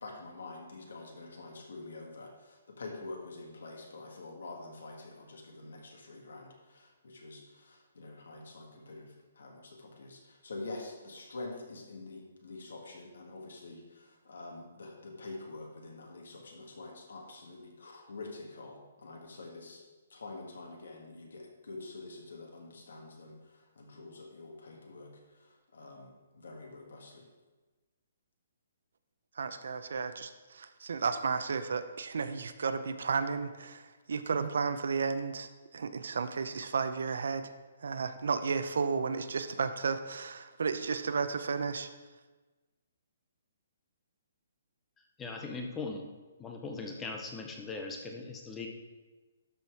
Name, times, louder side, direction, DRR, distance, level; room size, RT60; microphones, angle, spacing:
voice 1, 0.0-19.8 20.1-25.1 25.7-27.2, left 2 dB, 80° left, 0 dB, 2.0 m, -46 dB
voice 2, 29.4-37.5 37.8-41.9, right 5 dB, 65° right, 10 dB, 0.6 m, -33 dB
voice 3, 45.2-46.1 46.4-48.7, left 3 dB, 10° left, 2 dB, 0.5 m, -39 dB
12.5 x 4.5 x 4.8 m, 1.3 s
hypercardioid pair, 180°, 0 cm